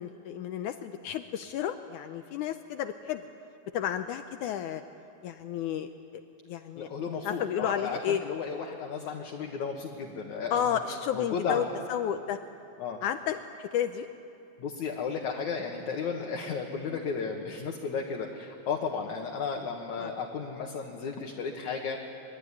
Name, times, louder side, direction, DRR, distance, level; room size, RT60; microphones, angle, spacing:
voice 1, 0.0-3.2 3.7-4.8 5.2-6.2 6.5-6.9 7.2-8.2 10.5-12.4 13.0-14.1 20.0-20.1, left 9 dB, 85° left, 8 dB, 1.7 m, -32 dB
voice 2, 6.8-10.8 11.1-11.7 12.8-13.0 14.6-22.0, left 5 dB, 55° left, 1 dB, 2.6 m, -34 dB
26.0 x 22.5 x 9.9 m, 2.9 s
omnidirectional pair, 4.5 m